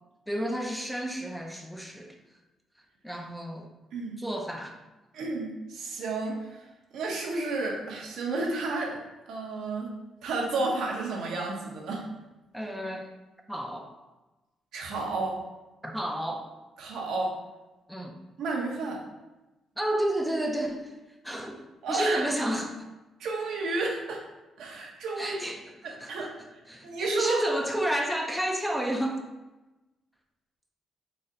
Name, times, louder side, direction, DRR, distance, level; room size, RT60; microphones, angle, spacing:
voice 1, 0.3-2.1 3.0-3.7 4.2-4.8 12.5-13.1 13.5-13.9 15.8-16.5 17.9-18.1 19.8-20.9 21.2-21.6 21.9-22.9 25.2-26.3 26.7-29.2, right 1 dB, ahead, 1 dB, 0.5 m, -31 dB
voice 2, 5.1-6.6 6.9-9.0 9.3-9.9 10.2-12.0 14.7-15.4 16.8-17.4 18.4-19.0 21.8-22.3 23.2-24.2 24.6-25.4 25.8-26.3 26.7-27.4, right 3 dB, 80° right, -2 dB, 0.8 m, -31 dB
4.0 x 2.1 x 3.7 m, 1.1 s
cardioid pair, 90°, 0 cm